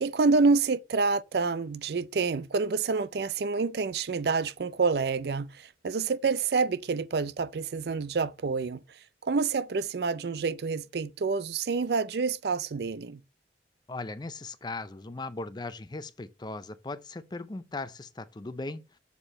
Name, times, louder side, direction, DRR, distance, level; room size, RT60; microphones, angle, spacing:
voice 1, 0.0-8.8 9.2-13.2, right 4 dB, 60° right, 0.4 m, -28 dB
voice 2, 13.9-19.0, left 2 dB, 25° left, 0.5 m, -38 dB
6.9 x 4.5 x 4.1 m
head